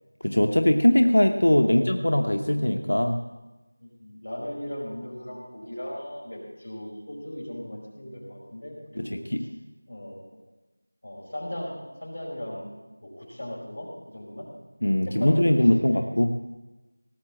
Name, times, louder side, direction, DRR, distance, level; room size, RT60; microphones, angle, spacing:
voice 1, 0.2-3.2 9.0-9.4 14.8-16.4, left 1 dB, 80° left, 5 dB, 0.9 m, -21 dB
voice 2, 3.8-9.5 9.9-10.2 11.0-12.7 13.0-14.5 15.0-16.0, left 1 dB, 35° left, -5 dB, 5.0 m, -37 dB
17.5 x 6.9 x 7.6 m, 1.1 s
figure-of-eight pair, 180°, 0 cm